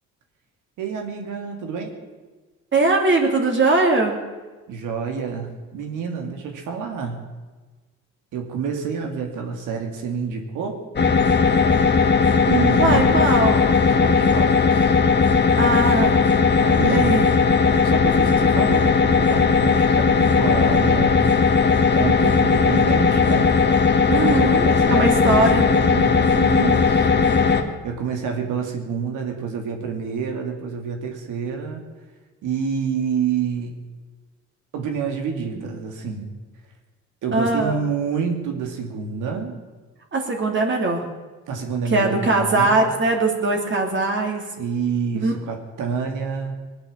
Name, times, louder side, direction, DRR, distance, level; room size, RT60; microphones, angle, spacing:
voice 1, 0.8-1.9 4.7-7.2 8.3-10.8 12.4-13.2 13.9-15.0 16.6-17.2 17.8-21.3 21.9-23.6 24.2-27.3 27.8-31.8 32.4-33.7 34.7-36.3 37.2-39.6 41.5-42.9 44.6-46.5, right 6 dB, 85° right, 3 dB, 2.6 m, -28 dB
voice 2, 2.7-4.2 12.8-13.6 15.6-16.2 16.8-17.3 24.1-25.7 37.3-37.8 40.1-41.0 41.8-44.4 45.2-45.3, right 2 dB, 40° right, 2 dB, 2.9 m, -20 dB
sound 1, 11.0-27.6, left 5 dB, 35° left, 1.6 m, -17 dB
20.5 x 8.8 x 7.3 m, 1.3 s
cardioid pair, 90°, 30 cm